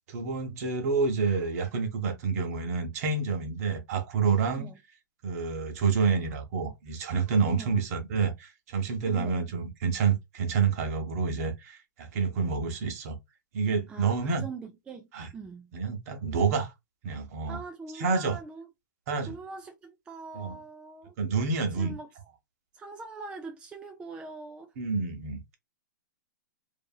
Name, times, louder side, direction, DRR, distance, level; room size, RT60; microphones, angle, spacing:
voice 1, 0.1-4.7 5.2-13.2 13.5-14.4 15.1-15.3 15.7-16.7 17.0-17.6 17.9-18.4 19.1-19.3 20.3-20.5 21.2-21.9 24.8-25.6, right 5 dB, 50° right, 0.9 m, -28 dB
voice 2, 7.5-7.8 9.1-9.5 13.9-15.1 15.3-15.7 17.5-18.7 19.3-21.1 21.8-22.1 22.7-24.7, right 4 dB, 10° right, 0.3 m, -42 dB
2.7 x 2.5 x 2.3 m
hypercardioid pair, 130°, 10 cm